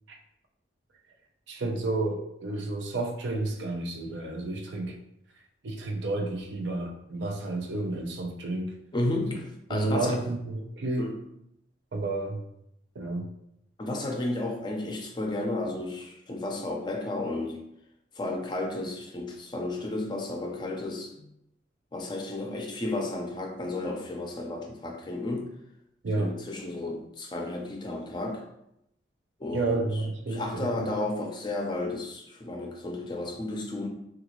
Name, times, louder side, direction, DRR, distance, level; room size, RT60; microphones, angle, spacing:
voice 1, 1.5-5.0 5.6-8.7 9.7-11.1 11.9-12.4 13.0-13.3 26.0-26.3 29.5-31.0, right 2 dB, 80° right, 2 dB, 0.5 m, -31 dB
voice 2, 8.9-10.2 11.0-11.1 13.8-17.6 18.2-21.3 21.9-25.5 26.2-28.4 29.4-29.8 30.3-33.9, left 2 dB, 25° left, 1 dB, 0.5 m, -32 dB
3.7 x 2.3 x 2.9 m, 0.78 s
head